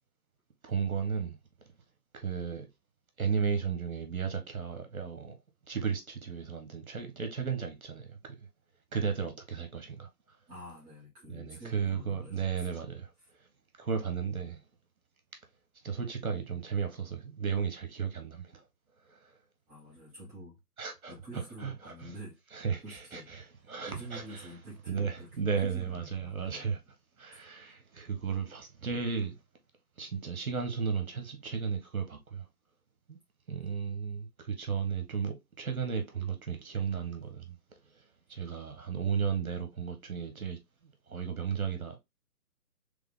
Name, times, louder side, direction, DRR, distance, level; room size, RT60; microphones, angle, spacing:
voice 1, 0.6-1.4 2.1-2.7 3.2-5.3 5.7-8.4 8.9-10.1 11.3-13.1 13.8-14.6 15.8-18.6 19.1-19.2 20.8-21.1 21.6-22.1 22.5-23.4 23.7-24.4 24.9-26.8 27.2-29.4 30.0-32.5 33.1-33.2 33.5-37.6 38.3-40.6 41.1-42.0, right 6 dB, 60° right, 1.4 m, -34 dB
voice 2, 10.5-12.7 13.2-13.3 19.7-20.6 21.1-22.4 22.8-23.3 23.9-26.7 28.4-28.5, right 1 dB, 5° right, 1.3 m, -47 dB
3.5 x 3.5 x 3.6 m
figure-of-eight pair, 150°, 48 cm